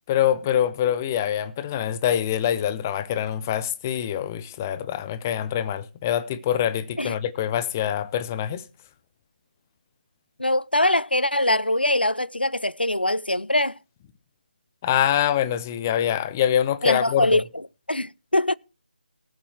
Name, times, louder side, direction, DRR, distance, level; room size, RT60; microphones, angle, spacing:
voice 1, 0.1-8.6 14.8-17.4, left 10 dB, 15° left, 0.6 m, -25 dB
voice 2, 10.4-13.8 16.8-17.4 17.9-18.6, left 1 dB, 90° left, 0.5 m, -22 dB
18.5 x 7.1 x 4.4 m
figure-of-eight pair, 155°, 5 cm